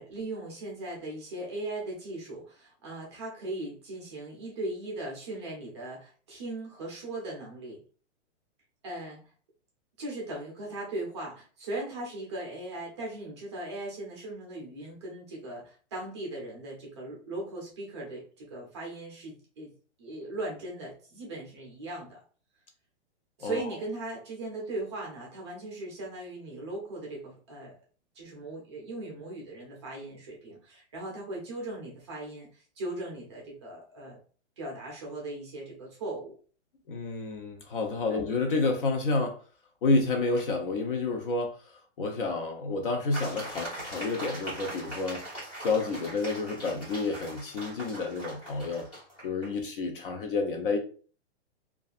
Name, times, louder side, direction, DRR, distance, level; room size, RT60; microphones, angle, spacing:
voice 1, 0.0-7.8 8.8-9.2 10.0-19.7 20.0-22.2 23.4-27.7 28.1-34.2 34.6-36.4 38.1-38.2, right 2 dB, 25° right, -2 dB, 0.5 m, -38 dB
voice 2, 36.9-39.4 39.8-41.6 42.0-45.2 45.6-48.9 49.2-50.8, left 3 dB, 50° left, 4 dB, 0.6 m, -29 dB
sound 1, 43.1-49.5, right 1 dB, 15° left, 1.2 m, -41 dB
2.7 x 2.3 x 2.4 m, 0.41 s
hypercardioid pair, 170°, 35 cm